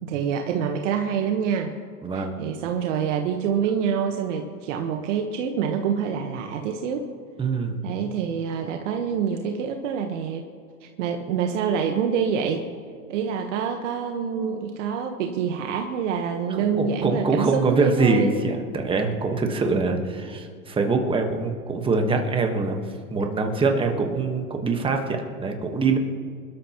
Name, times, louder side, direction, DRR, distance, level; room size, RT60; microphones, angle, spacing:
voice 1, 0.0-1.7 2.1-7.1 7.8-10.5 11.0-12.7 13.1-18.4, right 7 dB, 55° right, 4 dB, 1.4 m, -26 dB
voice 2, 2.0-2.3 7.4-7.8 16.6-22.8 23.1-26.0, right 3 dB, 10° right, 4 dB, 1.4 m, -24 dB
27.0 x 12.5 x 3.1 m, 2.3 s
hypercardioid pair, 135°, 44 cm